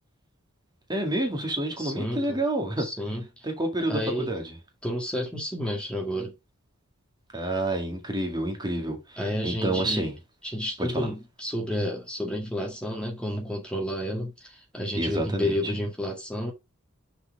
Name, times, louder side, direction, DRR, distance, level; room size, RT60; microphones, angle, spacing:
voice 1, 0.9-2.9 3.4-4.5 7.3-10.1 10.8-11.1 15.0-15.7, right 1 dB, 20° right, 2.1 m, -29 dB
voice 2, 1.8-2.4 2.8-3.5 3.8-4.3 4.8-6.3 9.2-10.1 10.4-16.5, equal, 5° left, 1.9 m, -31 dB
6.4 x 4.8 x 4.8 m
head